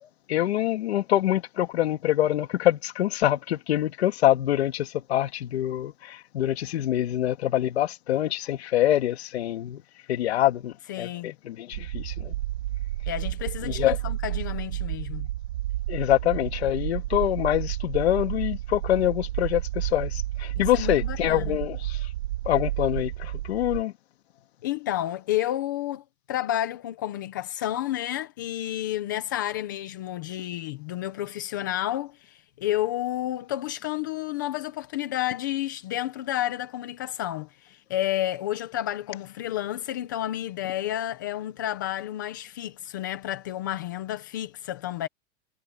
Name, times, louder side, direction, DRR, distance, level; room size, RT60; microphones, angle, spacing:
voice 1, 0.0-9.8 10.1-12.3 13.6-14.0 15.9-22.1 22.5-23.9, left 13 dB, 65° left, 2.5 m, -25 dB
voice 2, 10.9-11.3 13.1-15.3 20.6-21.6 24.6-45.1, left 13 dB, 20° left, 0.4 m, -31 dB
sound 1, 11.7-23.8, right 14 dB, 60° right, 2.3 m, -31 dB
supercardioid pair, 180°, 35 cm